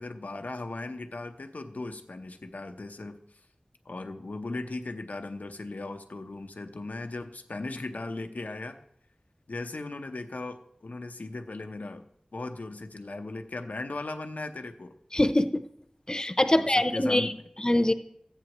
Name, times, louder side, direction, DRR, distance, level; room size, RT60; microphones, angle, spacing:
voice 1, 0.0-3.2 3.8-8.8 9.5-12.1 12.3-14.9 16.5-17.4, left 2 dB, 85° left, 6 dB, 0.8 m, -37 dB
voice 2, 15.1-15.6 16.1-17.3 17.6-17.9, left 1 dB, 30° left, 9 dB, 0.7 m, -23 dB
14.5 x 8.9 x 3.0 m, 0.73 s
wide cardioid pair, 45°, 3 cm